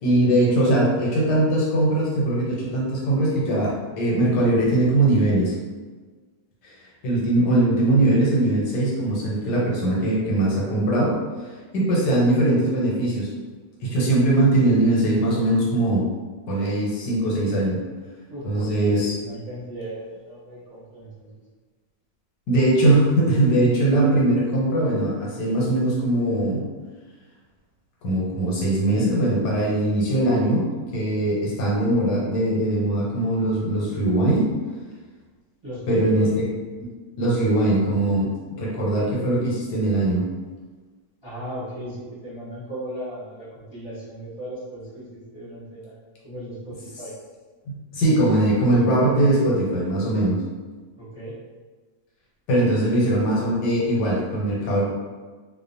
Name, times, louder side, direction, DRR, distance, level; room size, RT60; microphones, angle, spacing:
voice 1, 0.0-5.5 7.0-11.2 11.7-13.3 13.8-16.1 16.5-17.8 18.4-19.1 22.5-26.7 28.0-30.7 30.9-34.5 35.9-36.4 37.2-38.3 38.6-40.3 47.7-50.4 52.5-54.8, right 1 dB, 85° left, -4 dB, 1.3 m, -21 dB
voice 2, 18.3-21.3 35.6-36.4 41.2-47.1 51.0-51.4, right 1 dB, 20° right, -13 dB, 0.7 m, -36 dB
2.8 x 2.1 x 2.6 m, 1.4 s
omnidirectional pair, 1.8 m